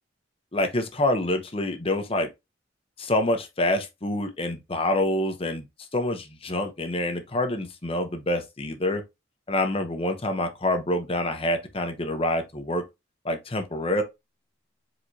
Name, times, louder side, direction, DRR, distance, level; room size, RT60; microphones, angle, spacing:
voice 1, 0.5-2.3 3.0-5.6 5.9-9.0 9.5-12.8 13.2-14.0, left 1 dB, 30° left, 0.8 m, -26 dB
4.6 x 3.7 x 2.7 m
head